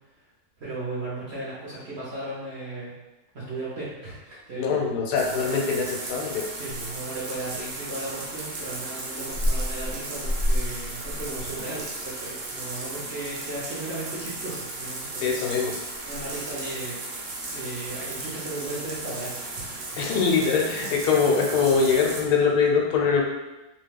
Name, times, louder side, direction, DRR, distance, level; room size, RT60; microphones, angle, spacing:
voice 1, 0.6-2.9 3.3-4.8 6.6-15.7 16.1-17.0 17.5-20.4, right 2 dB, 55° right, -8 dB, 0.8 m, -36 dB
voice 2, 4.5-6.5 15.2-15.7 20.0-23.2, left 5 dB, 80° left, 0 dB, 1.1 m, -23 dB
sound 1, 5.1-22.2, right 1 dB, 80° right, 0.5 m, -33 dB
2.8 x 2.2 x 3.3 m, 1.0 s
omnidirectional pair, 1.7 m